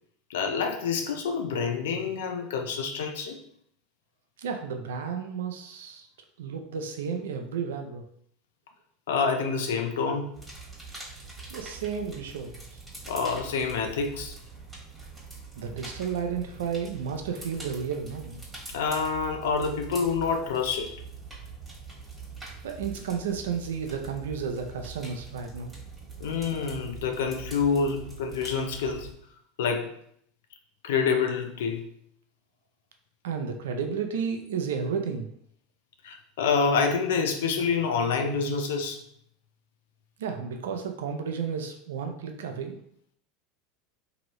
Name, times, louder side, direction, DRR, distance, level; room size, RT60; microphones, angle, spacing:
voice 1, 0.3-3.4 9.1-10.4 13.1-14.4 18.7-21.0 26.2-29.1 29.6-29.9 30.8-31.9 36.0-39.0, left 5 dB, 80° left, 5 dB, 0.5 m, -27 dB
voice 2, 4.4-6.1 6.4-8.0 11.5-12.5 15.6-18.4 22.6-25.7 33.2-35.3 40.2-42.8, right 6 dB, 85° right, 5 dB, 0.5 m, -32 dB
sound 1, 10.3-29.1, right 4 dB, 15° right, 1.4 m, -44 dB
3.0 x 2.6 x 3.0 m, 0.68 s
hypercardioid pair, 100°, 0 cm